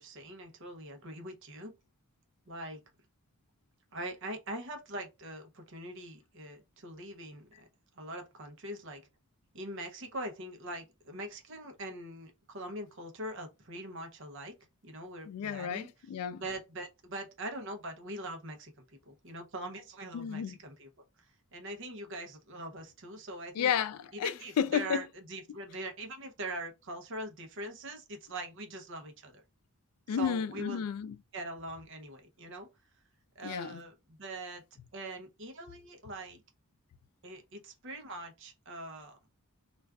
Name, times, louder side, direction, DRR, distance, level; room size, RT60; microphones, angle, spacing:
voice 1, 0.0-1.7 2.5-2.8 3.9-7.7 8.0-9.0 9.5-14.5 14.8-15.9 16.4-20.9 21.2-23.7 24.1-29.4 30.1-30.8 31.3-32.7 33.4-34.6 34.9-36.4 37.2-39.2, right 1 dB, 55° right, 0.6 m, -42 dB
voice 2, 15.3-16.4 20.1-20.6 23.6-25.0 30.1-31.2 33.4-33.8, left 8 dB, 85° left, 0.3 m, -32 dB
2.4 x 2.3 x 3.4 m
head